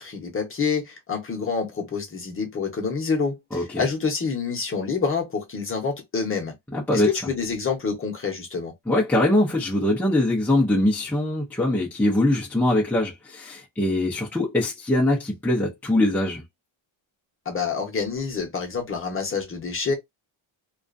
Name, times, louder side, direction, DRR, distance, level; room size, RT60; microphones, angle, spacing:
voice 1, 0.0-6.5 6.9-8.7 17.5-19.9, left 5 dB, 25° left, 0.8 m, -27 dB
voice 2, 3.5-3.8 6.7-7.1 8.9-16.4, left 1 dB, 5° left, 0.5 m, -22 dB
2.4 x 2.3 x 2.5 m
cardioid pair, 160°, 49 cm